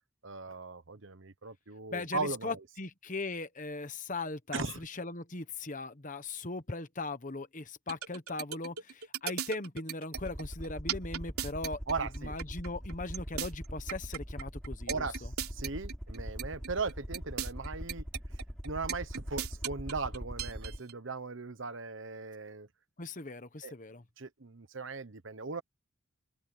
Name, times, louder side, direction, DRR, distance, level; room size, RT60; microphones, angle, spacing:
voice 1, 0.2-2.6 4.5-4.8 11.9-12.4 14.9-18.1 18.6-22.7 23.6-23.7 24.2-25.6, right 4 dB, 60° right, 1.1 m, -38 dB
voice 2, 1.9-11.8 12.2-15.1 23.0-24.0, left 3 dB, 35° left, 1.2 m, -39 dB
sound 1, 7.9-20.9, right 8 dB, 90° right, 3.7 m, -37 dB
Aircraft, 10.1-20.8, equal, 5° left, 5.5 m, -42 dB
open air
head